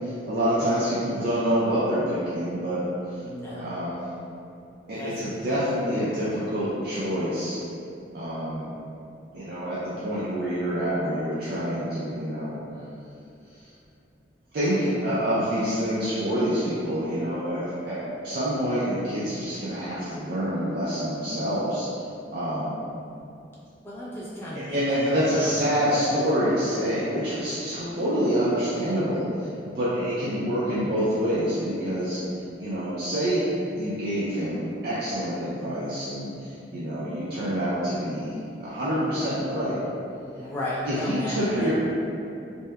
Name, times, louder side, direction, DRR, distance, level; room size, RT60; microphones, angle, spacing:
voice 1, 0.3-2.9 3.5-4.0 4.9-7.6 8.1-8.7 9.3-12.5 14.5-21.9 22.3-22.7 24.7-29.3 29.8-32.2 32.6-33.5 33.8-39.8 40.9-41.7, equal, 55° right, -10 dB, 0.4 m, -27 dB
voice 2, 3.2-3.7 4.9-5.4 23.8-25.5 27.9-28.4 38.9-39.4 40.4-41.7, left 1 dB, 10° left, -8 dB, 0.4 m, -35 dB
2.8 x 2.1 x 2.2 m, 2.6 s
head